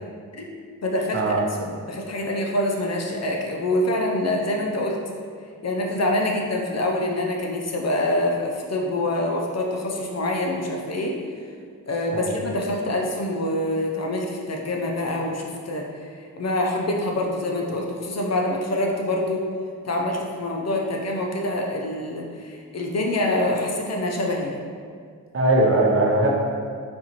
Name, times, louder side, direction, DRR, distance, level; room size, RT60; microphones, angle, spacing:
voice 1, 0.8-1.3 1.7-5.0 5.6-11.2 11.9-19.5 19.9-24.6, left 1 dB, 45° left, 0 dB, 0.5 m, -25 dB
voice 2, 25.3-26.3, right 2 dB, 40° right, -3 dB, 0.7 m, -19 dB
4.3 x 2.4 x 2.9 m, 2.1 s
cardioid pair, 50°, 35 cm